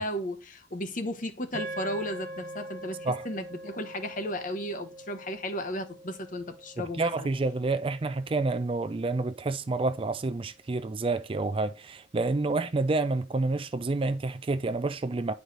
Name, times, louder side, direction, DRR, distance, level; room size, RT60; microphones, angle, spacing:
voice 1, 0.0-7.3, left 1 dB, 45° left, 1.0 m, -34 dB
sound 1, 1.5-9.9, right 1 dB, 50° right, 1.5 m, -44 dB
voice 2, 6.8-15.3, right 3 dB, 25° right, 0.4 m, -29 dB
9.9 x 4.7 x 3.9 m
head